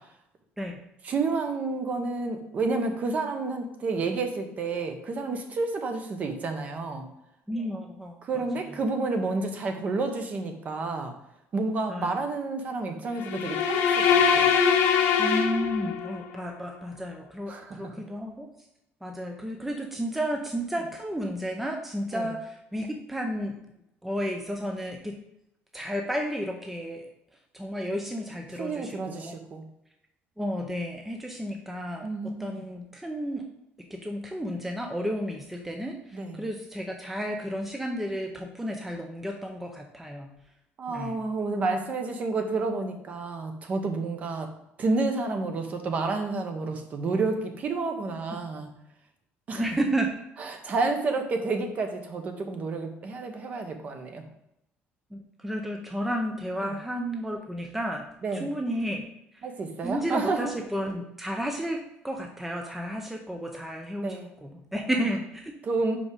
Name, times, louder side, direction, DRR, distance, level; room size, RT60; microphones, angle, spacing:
voice 1, 1.0-7.0 8.2-11.1 11.5-14.5 17.5-17.9 22.1-22.3 28.6-29.6 32.0-32.6 36.1-36.4 40.8-44.5 44.8-48.7 49.5-49.7 50.4-54.2 56.6-56.7 58.2-58.5 59.4-60.5 64.0-64.3 65.6-66.0, right 3 dB, 35° right, 5 dB, 0.9 m, -30 dB
voice 2, 7.5-8.4 11.9-12.2 15.2-18.5 19.0-23.6 24.0-25.2 25.7-27.1 27.5-29.4 30.4-33.4 33.9-40.3 40.9-41.2 49.6-50.1 55.1-58.0 58.3-59.0 59.3-59.4 59.8-65.5, equal, 5° right, 2 dB, 0.6 m, -32 dB
sound 1, 13.2-16.3, left 6 dB, 70° left, 1.0 m, -23 dB
5.1 x 4.8 x 5.3 m, 0.83 s
cardioid pair, 150°, 4 cm